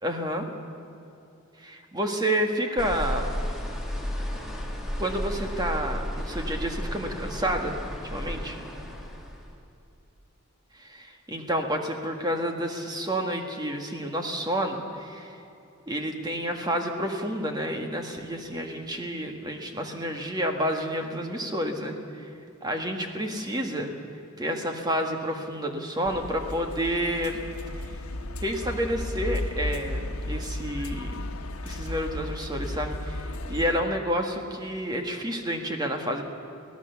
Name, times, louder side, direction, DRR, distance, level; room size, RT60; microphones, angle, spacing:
voice 1, 0.0-0.5 1.6-3.3 5.0-7.8 8.0-8.6 10.7-15.4 15.9-22.3 22.6-23.9 24.4-27.4 27.8-28.0 28.4-31.2 31.6-36.2, equal, 20° right, 4 dB, 1.7 m, -30 dB
sound 1, 2.8-9.5, equal, ahead, 2.1 m, -33 dB
sound 2, 26.0-33.8, left 1 dB, 85° left, 1.3 m, -34 dB
24.0 x 16.5 x 7.0 m, 2.8 s
head